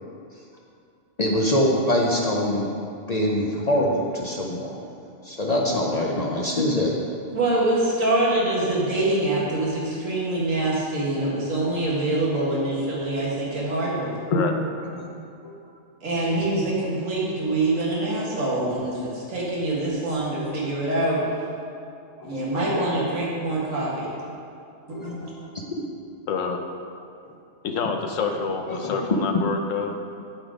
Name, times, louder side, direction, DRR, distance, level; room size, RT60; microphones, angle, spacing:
voice 1, 1.2-2.7 3.1-4.8 5.2-6.9 14.3-14.4 15.0-15.1 15.4-15.5 16.1-16.3 22.2-22.6 24.9-25.4 25.7-25.8 28.3-28.4 28.7-29.2, left 1 dB, 40° left, -2 dB, 0.7 m, -24 dB
voice 2, 7.3-14.1 16.0-21.2 22.2-24.1 25.0-25.2, right 2 dB, 80° right, -6 dB, 2.0 m, -25 dB
voice 3, 26.3-26.6 27.6-30.0, left 5 dB, 80° left, 4 dB, 1.1 m, -27 dB
11.5 x 3.9 x 5.0 m, 2.5 s
omnidirectional pair, 1.3 m